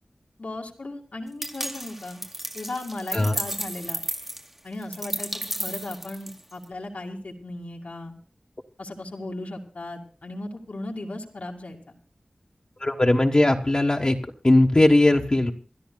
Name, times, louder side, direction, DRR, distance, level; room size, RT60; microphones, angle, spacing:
voice 1, 0.4-2.2 2.5-4.0 4.6-8.1 8.8-11.9, left 2 dB, 85° left, 0 dB, 2.3 m, -36 dB
sound 1, 1.4-6.6, equal, 10° right, 1.2 m, -33 dB
voice 2, 12.8-14.2 14.4-15.5, left 1 dB, 35° left, 1 dB, 1.2 m, -19 dB
27.5 x 13.0 x 2.3 m, 0.39 s
wide cardioid pair, 70°, 2 cm